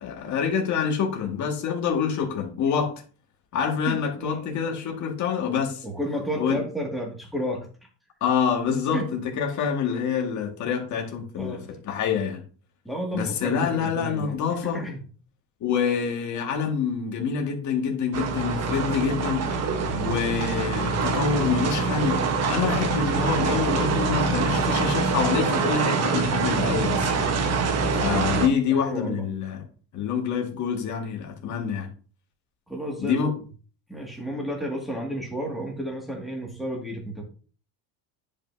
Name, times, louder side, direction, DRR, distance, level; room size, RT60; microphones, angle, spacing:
voice 1, 0.0-2.9 3.5-5.9 6.4-6.6 8.2-12.4 13.1-14.8 15.6-19.5 20.0-27.3 27.9-29.6 29.9-31.9 33.0-33.3, left 7 dB, 40° left, 2.0 m, -26 dB
voice 2, 3.9-4.5 5.8-7.7 8.9-9.1 11.4-11.7 12.8-15.0 19.8-20.1 27.8-28.0 28.7-29.3 32.7-33.2 33.9-37.2, right 1 dB, ahead, 2.2 m, -32 dB
sound 1, 18.1-28.5, right 4 dB, 35° right, 1.2 m, -25 dB
10.0 x 5.6 x 2.8 m
cardioid pair, 140°, 43 cm